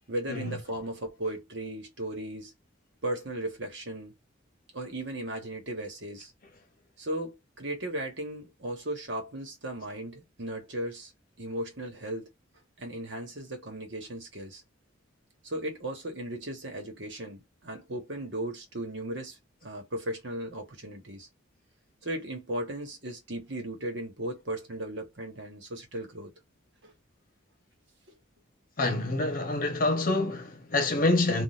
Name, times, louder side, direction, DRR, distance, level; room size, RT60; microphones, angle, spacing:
voice 1, 0.1-2.5 3.0-4.1 4.7-6.3 7.0-11.1 11.4-12.3 12.8-14.6 15.4-21.3 22.0-26.3 26.8-26.9, right 1 dB, 60° right, 1.3 m, -36 dB
voice 2, 28.8-31.4, left 2 dB, 45° left, 0.9 m, -26 dB
3.8 x 2.4 x 2.5 m
head